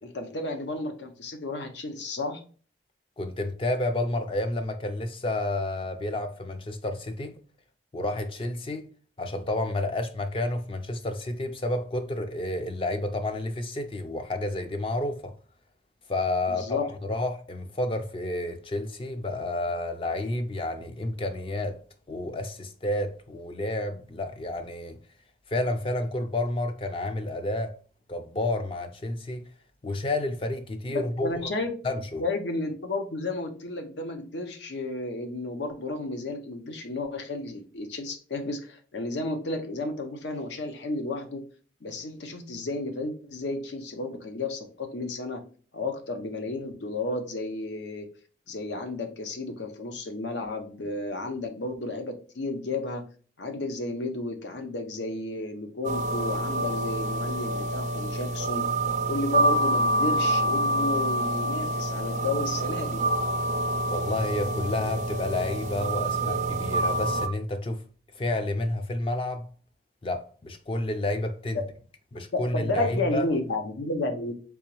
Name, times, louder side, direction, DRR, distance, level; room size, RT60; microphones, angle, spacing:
voice 1, 0.0-2.4 16.5-16.9 30.9-31.7 32.2-41.4 41.8-45.4 45.7-48.1 48.5-53.0 53.4-58.7 59.1-63.0 72.3-74.3, left 2 dB, 80° left, 0.7 m, -32 dB
voice 2, 3.2-7.3 7.9-8.9 9.2-15.3 16.1-21.8 22.1-25.0 25.5-27.7 28.1-29.4 29.8-31.5 31.8-32.2 63.9-67.8 68.1-69.5 70.0-71.6 72.1-73.3, left 1 dB, 30° left, 0.4 m, -30 dB
sound 1, 55.8-67.3, right 1 dB, 40° right, 0.3 m, -27 dB
3.5 x 3.0 x 2.9 m
head